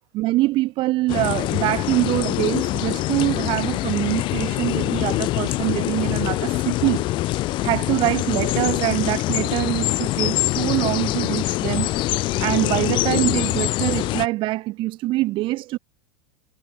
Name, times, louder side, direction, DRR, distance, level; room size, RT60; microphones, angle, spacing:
voice 1, 0.1-7.0 7.6-11.9 12.4-15.8, right 18 dB, 40° right, 6.1 m, -24 dB
sound 1, 1.1-14.3, left 17 dB, 40° left, 2.1 m, -24 dB
figure-of-eight pair, 85°, 13 cm